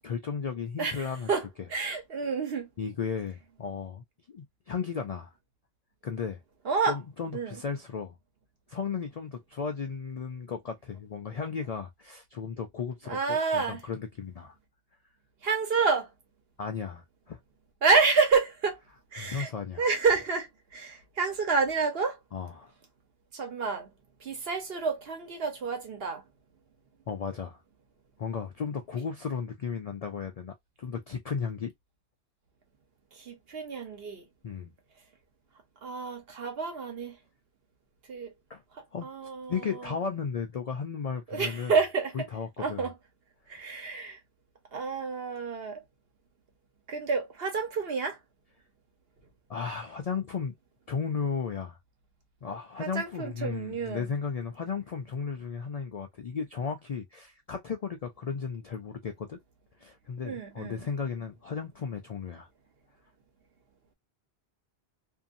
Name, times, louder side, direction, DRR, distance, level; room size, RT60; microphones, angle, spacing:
voice 1, 0.0-1.3 2.8-5.3 6.0-6.4 6.8-8.2 8.7-14.5 16.6-17.4 19.2-19.8 22.3-22.7 27.1-27.6 28.2-31.7 34.4-34.7 38.5-38.6 38.9-39.1 39.5-41.7 42.1-42.9 43.5-43.6 49.5-50.6 50.9-51.8 52.4-59.4 59.8-62.5, left 6 dB, 60° left, 0.4 m, -35 dB
voice 2, 0.8-2.7 6.6-7.0 7.3-7.6 13.1-13.8 15.4-16.1 17.8-18.8 19.1-19.5 19.8-22.2 23.3-23.9 24.2-26.2 33.1-34.3 35.8-37.2 38.1-38.3 39.0-39.9 41.3-42.3 42.6-42.9 43.5-44.2 44.7-45.8 46.9-48.2 52.8-54.1 60.2-60.9, right 4 dB, 65° right, 1.1 m, -29 dB
2.6 x 2.6 x 2.5 m
omnidirectional pair, 1.1 m